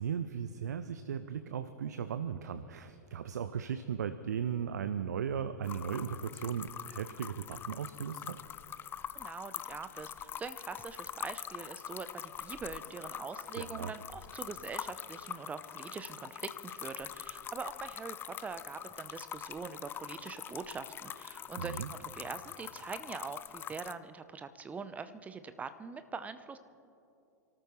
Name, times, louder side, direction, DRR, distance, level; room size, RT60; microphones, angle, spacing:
voice 1, 0.0-8.4 13.6-13.9 21.6-21.9, right 8 dB, 70° right, 12 dB, 0.6 m, -37 dB
sound 1, 5.6-23.9, left 9 dB, 20° left, 0.5 m, -44 dB
voice 2, 9.1-26.6, right 5 dB, 15° right, 12 dB, 0.7 m, -43 dB
27.5 x 13.5 x 3.1 m, 2.7 s
figure-of-eight pair, 95°, 10 cm